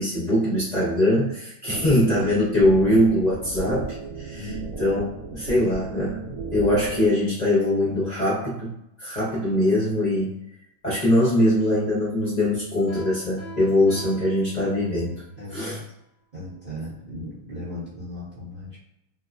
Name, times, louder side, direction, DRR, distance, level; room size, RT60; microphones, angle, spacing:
voice 1, 0.0-4.5 4.8-5.0 5.3-10.3 10.8-15.1 15.5-15.8, left 1 dB, 80° left, -9 dB, 0.3 m, -22 dB
sound 1, 1.7-7.1, right 3 dB, 85° right, 0.8 m, -35 dB
Piano, 12.9-15.2, right 3 dB, 40° left, 0.8 m, -43 dB
voice 2, 15.4-15.9 16.3-18.8, left 1 dB, 35° right, -9 dB, 0.7 m, -37 dB
3.4 x 2.0 x 2.3 m, 0.83 s
omnidirectional pair, 2.1 m